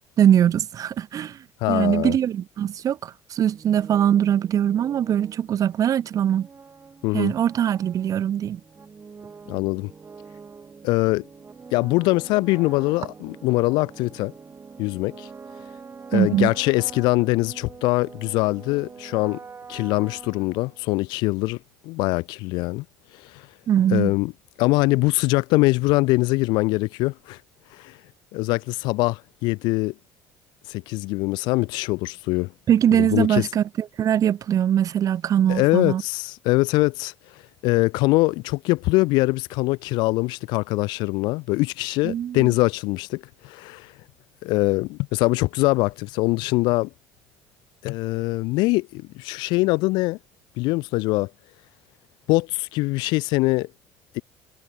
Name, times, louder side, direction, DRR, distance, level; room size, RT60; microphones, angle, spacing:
voice 1, 0.2-1.4 1.7-6.5 7.1-8.6 16.1-16.5 23.7-24.1 32.7-36.0 42.0-42.5, right 10 dB, 50° right, 0.6 m, -21 dB
voice 2, 1.6-2.2 7.0-7.3 9.5-9.9 10.8-11.3 11.7-14.3 14.8-15.3 16.1-19.4 19.7-21.6 21.8-22.8 23.3-23.4 23.9-24.3 24.6-27.4 27.7-27.9 28.3-29.9 30.7-32.5 32.9-33.5 35.5-37.1 37.6-43.9 44.4-46.9 47.8-50.2 50.6-51.3 52.3-53.7 54.1-54.2, left 23 dB, 75° left, 0.4 m, -23 dB
sound 1, 3.4-21.1, right 5 dB, 30° right, 2.4 m, -44 dB
supercardioid pair, 75°, 8 cm